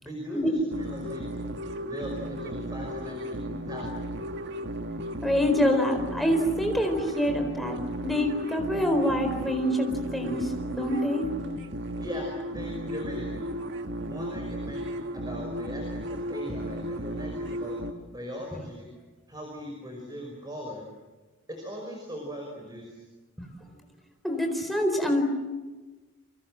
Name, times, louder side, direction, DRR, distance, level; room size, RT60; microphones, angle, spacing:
voice 1, 0.0-1.3 1.8-4.1 12.0-13.5 14.1-14.9 15.1-17.8 18.1-18.9 19.3-20.9 21.5-23.0, equal, 20° right, 1 dB, 5.3 m, -39 dB
sound 1, 0.7-17.9, equal, 55° right, 1.7 m, -35 dB
voice 2, 5.2-10.4 10.7-11.3 24.2-25.2, equal, ahead, 3 dB, 4.4 m, -26 dB
29.0 x 24.5 x 7.7 m, 1.2 s
head